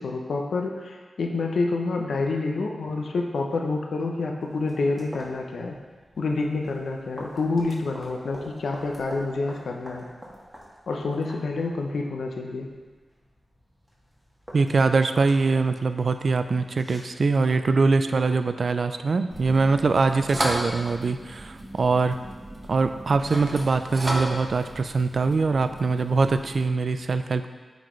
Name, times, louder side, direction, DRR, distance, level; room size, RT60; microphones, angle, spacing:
voice 1, 0.0-5.8 6.2-10.1 10.9-12.7, left 3 dB, 80° left, 2 dB, 0.6 m, -28 dB
sound 1, 4.4-18.2, equal, 5° right, 1.8 m, -47 dB
voice 2, 14.5-22.2 22.7-27.5, right 4 dB, 65° right, 9 dB, 0.3 m, -23 dB
sound 2, 19.3-26.6, right 1 dB, 35° right, 1.0 m, -34 dB
8.3 x 4.0 x 3.1 m, 1.4 s
cardioid pair, 45°, 0 cm